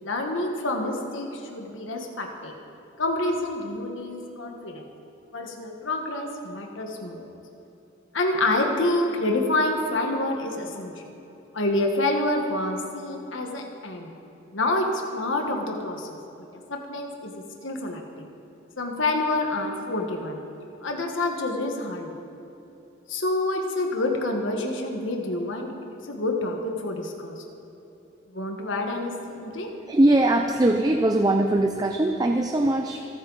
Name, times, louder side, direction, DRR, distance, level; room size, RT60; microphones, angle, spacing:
voice 1, 0.0-2.5 3.0-4.9 5.3-7.3 8.1-11.1 11.5-14.1 14.5-16.1 16.7-18.2 18.8-20.4 20.8-22.2 23.1-27.4 28.3-29.7, left 2 dB, 75° left, 2 dB, 1.4 m, -28 dB
voice 2, 29.9-33.1, right 1 dB, 20° right, 3 dB, 0.5 m, -21 dB
27.5 x 9.5 x 4.0 m, 2.9 s
head